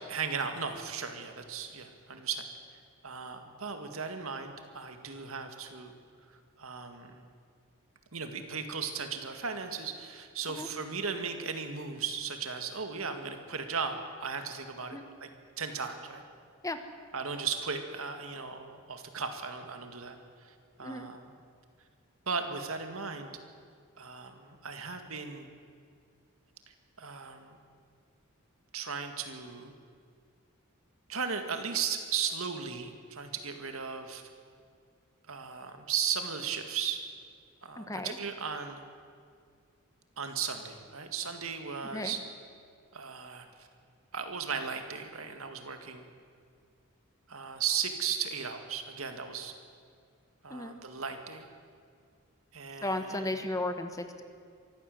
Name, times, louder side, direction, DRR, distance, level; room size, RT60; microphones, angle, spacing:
voice 1, 0.1-2.5 3.0-5.9 6.6-7.2 8.1-15.3 15.6-16.2 17.1-20.2 20.4-21.3 22.3-23.3 24.0-25.5 27.0-27.6 28.7-29.7 31.1-34.2 35.3-37.0 37.6-38.8 40.2-42.2 42.9-43.5 44.1-46.1 47.3-49.5 50.4-51.5 52.5-53.3, right 6 dB, 70° right, 6 dB, 2.0 m, -36 dB
voice 2, 37.8-38.2 41.9-42.1 50.5-50.7 52.8-54.2, left 1 dB, 15° left, 8 dB, 1.2 m, -35 dB
23.5 x 15.5 x 7.9 m, 2.1 s
head